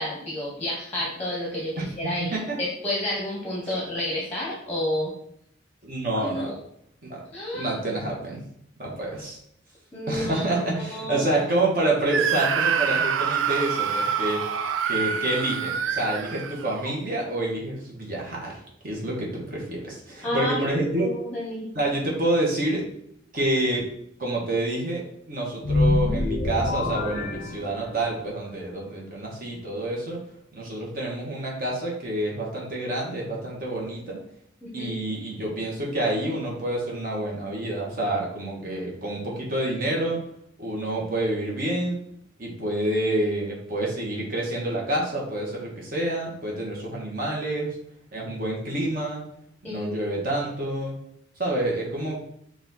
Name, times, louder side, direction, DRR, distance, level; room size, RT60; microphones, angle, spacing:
voice 1, 0.0-5.1 6.2-6.6 7.3-7.7 9.9-10.5 10.9-11.3 20.2-20.7 21.0-21.7 34.6-34.9 49.6-49.9, left 1 dB, 10° left, -4 dB, 0.9 m, -30 dB
voice 2, 5.8-6.5 7.1-7.2 7.5-8.4 8.8-9.4 10.1-14.4 14.9-21.1 21.7-22.8 23.3-23.9 24.2-25.0 25.3-30.2 30.5-34.2 34.7-40.2 40.6-42.0 42.4-47.8 48.1-49.2 49.6-50.9 51.4-52.2, right 1 dB, 50° right, -2 dB, 1.2 m, -28 dB
Screaming, 12.1-17.0, right 7 dB, 90° right, 0.4 m, -26 dB
sound 1, 25.6-28.2, left 2 dB, 40° left, 0.4 m, -25 dB
4.1 x 2.4 x 4.1 m, 0.71 s
head